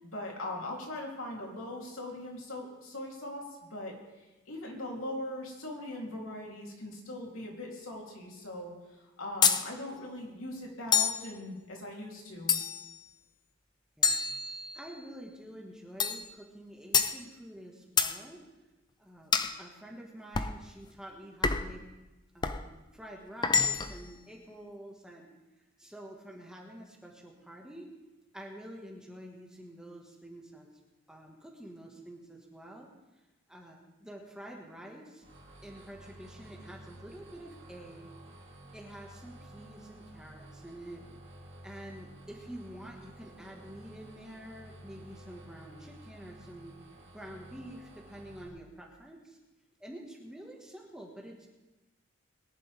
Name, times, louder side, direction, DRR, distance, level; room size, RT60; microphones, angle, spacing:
voice 1, 0.0-8.7 9.0-12.6, left 1 dB, 85° left, -1 dB, 3.2 m, -40 dB
sound 1, 9.4-9.7 10.9-11.3 12.5-12.9 14.0-14.9 16.0-16.3 16.9-17.2 18.0-18.2 19.3-19.6 20.3-20.6 21.4-21.8 22.4-22.6 23.4-24.0, left 6 dB, 20° left, 0.5 m, -27 dB
voice 2, 14.0-14.3 14.7-18.4 19.0-21.8 22.3-25.3 25.8-27.9 28.3-30.7 31.1-32.9 33.5-35.3 35.6-38.1 38.7-41.0 41.6-46.8 47.1-49.4 49.8-51.5, right 1 dB, 5° right, -2 dB, 1.6 m, -48 dB
sound 2, 35.2-48.5, right 1 dB, 60° right, 3.1 m, -52 dB
21.5 x 10.5 x 3.5 m, 1.1 s
head